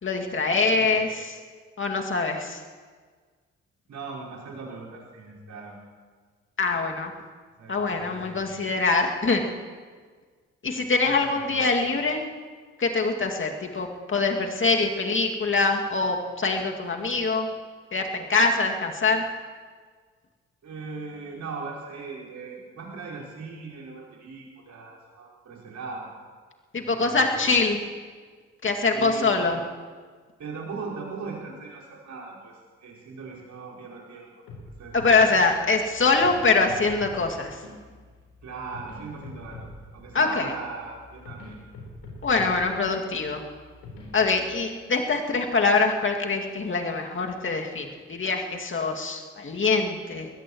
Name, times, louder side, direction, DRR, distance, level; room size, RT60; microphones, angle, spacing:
voice 1, 0.0-1.3 1.8-2.6 6.6-7.1 7.7-9.4 10.6-12.2 12.8-17.5 17.9-19.2 26.7-27.8 28.6-29.6 34.9-37.6 40.1-40.5 42.2-43.4 44.1-50.3, left 3 dB, 35° left, 2 dB, 2.4 m, -24 dB
voice 2, 0.7-1.1 3.9-5.8 7.6-8.4 11.0-11.6 20.6-26.1 26.8-27.4 28.9-29.6 30.4-34.3 34.7-35.4 38.4-41.6, right 4 dB, 50° right, -5 dB, 5.1 m, -39 dB
sound 1, 34.5-44.6, left 2 dB, 70° left, 4.2 m, -45 dB
21.5 x 19.0 x 3.1 m, 1.6 s
figure-of-eight pair, 45°, 36 cm